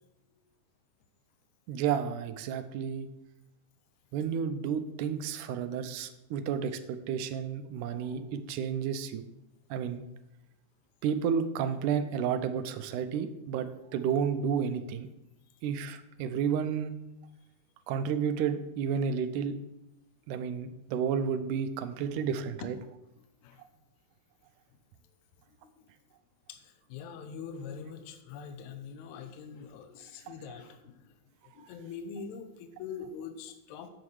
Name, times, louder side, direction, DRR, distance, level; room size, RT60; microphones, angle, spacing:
voice 1, 1.7-3.1 4.1-9.2 9.7-10.0 11.0-15.1 15.6-16.9 17.9-19.6 20.3-22.8, right 7 dB, 80° right, 9 dB, 2.2 m, -31 dB
voice 2, 23.2-23.6 25.6-25.8 26.5-31.2 31.4-33.9, left 6 dB, 75° left, 8 dB, 2.0 m, -44 dB
9.0 x 7.4 x 4.8 m, 0.91 s
omnidirectional pair, 3.6 m